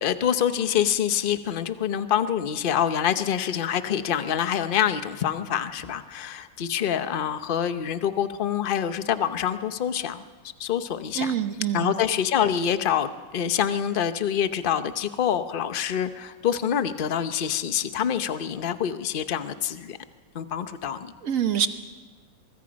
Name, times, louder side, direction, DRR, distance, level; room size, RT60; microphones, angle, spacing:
voice 1, 0.0-10.2 10.6-11.4 11.7-20.0 20.3-21.1, left 9 dB, 50° left, 11 dB, 0.6 m, -26 dB
voice 2, 11.2-11.9 21.2-21.7, right 8 dB, 55° right, 9 dB, 1.1 m, -25 dB
23.5 x 22.5 x 5.2 m, 1.4 s
omnidirectional pair, 2.0 m